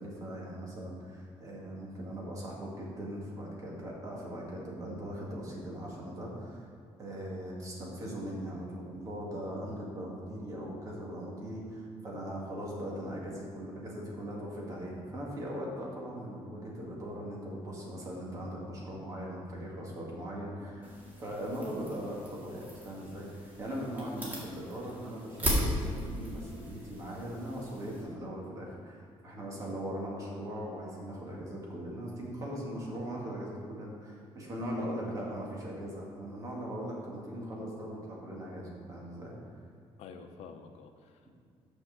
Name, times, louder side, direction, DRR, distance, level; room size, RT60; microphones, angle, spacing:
voice 1, 0.0-6.7 7.0-20.9 21.2-39.3, equal, 30° right, -3 dB, 2.0 m, -40 dB
sound 1, 20.8-28.0, equal, 15° right, 2.0 m, -37 dB
voice 2, 40.0-41.3, left 5 dB, 85° left, 6 dB, 0.7 m, -49 dB
6.4 x 6.2 x 6.4 m, 2.3 s
cardioid pair, 160°, 11 cm